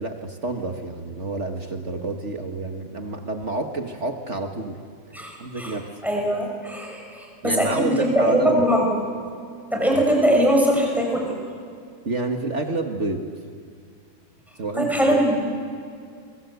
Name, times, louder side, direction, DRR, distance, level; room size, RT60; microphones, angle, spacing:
voice 1, 0.0-4.8 5.4-5.9 7.4-8.6 9.9-10.0 12.0-13.2 14.6-15.4, right 2 dB, 35° right, 5 dB, 1.3 m, -29 dB
voice 2, 5.1-5.7 6.0-8.9 9.7-11.3 14.8-15.4, equal, ahead, -1 dB, 5.8 m, -21 dB
30.0 x 24.0 x 8.2 m, 2.3 s
omnidirectional pair, 3.4 m